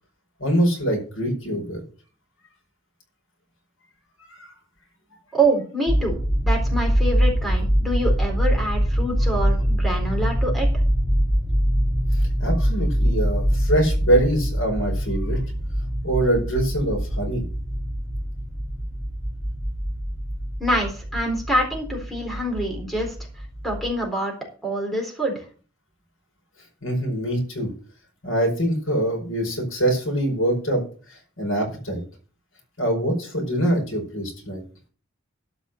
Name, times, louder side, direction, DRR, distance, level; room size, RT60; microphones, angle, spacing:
voice 1, 0.4-1.8 12.1-15.4 16.0-17.4 26.8-27.7 28.2-30.8 31.1-32.0 32.8-34.6, right 1 dB, 85° left, 1 dB, 5.2 m, -24 dB
voice 2, 5.3-10.7 20.6-23.1 23.6-24.3 24.6-25.4, right 1 dB, ahead, 0 dB, 4.0 m, -26 dB
sound 1, 5.9-23.9, equal, 20° left, 2.2 m, -24 dB
12.5 x 5.7 x 6.4 m, 0.39 s
head